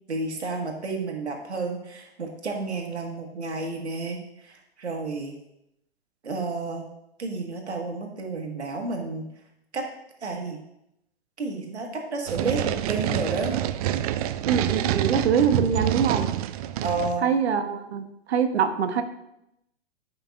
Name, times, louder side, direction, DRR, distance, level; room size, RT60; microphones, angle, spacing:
voice 1, 0.1-5.4 6.2-6.9 7.2-9.3 9.7-9.9 10.2-10.6 11.4-13.5 16.8-17.3, right 3 dB, 90° right, 2 dB, 1.8 m, -31 dB
sound 1, 12.3-17.2, right 12 dB, 35° right, 0.4 m, -27 dB
voice 2, 14.5-16.3 17.2-19.0, right 7 dB, 75° right, 8 dB, 1.1 m, -24 dB
13.5 x 5.8 x 2.5 m, 0.83 s
hypercardioid pair, 115°, 33 cm